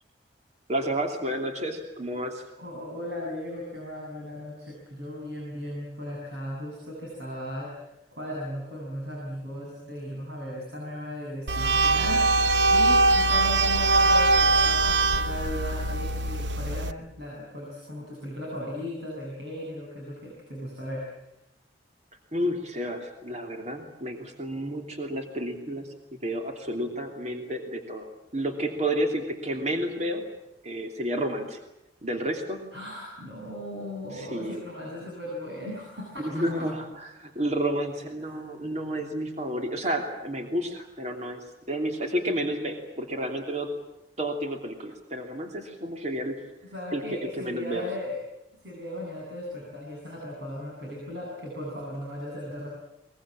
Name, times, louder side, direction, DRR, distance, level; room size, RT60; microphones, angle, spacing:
voice 1, 0.7-2.4 22.3-30.2 30.6-31.6 32.0-32.6 34.1-34.6 36.2-41.4 41.7-43.7 44.2-46.4 46.9-47.8, right 1 dB, 40° right, 3 dB, 2.9 m, -31 dB
voice 2, 2.6-7.7 8.1-12.3 12.7-21.0 32.7-36.7 46.7-48.2 48.6-52.7, left 1 dB, 70° right, -2 dB, 7.9 m, -37 dB
sound 1, 11.5-16.9, right 2 dB, 90° right, 1.0 m, -22 dB
22.5 x 22.0 x 8.8 m, 0.87 s
head